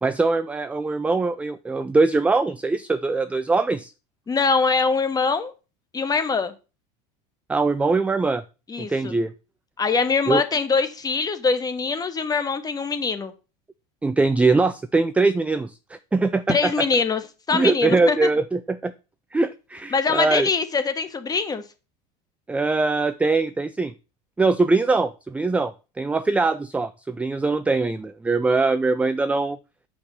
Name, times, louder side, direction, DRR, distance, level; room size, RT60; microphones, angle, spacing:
voice 1, 0.0-3.9 7.5-8.4 8.8-9.3 10.3-10.4 14.0-16.7 17.5-18.9 19.3-20.5 22.5-23.9 24.4-25.7 26.0-29.6, right 3 dB, 5° right, 0.4 m, -22 dB
voice 2, 4.3-5.5 5.9-6.5 8.7-9.1 9.8-13.3 16.5-17.2 17.5-18.3 19.9-21.6, left 4 dB, 20° left, 1.3 m, -23 dB
8.6 x 5.3 x 6.2 m
supercardioid pair, 130°, 20 cm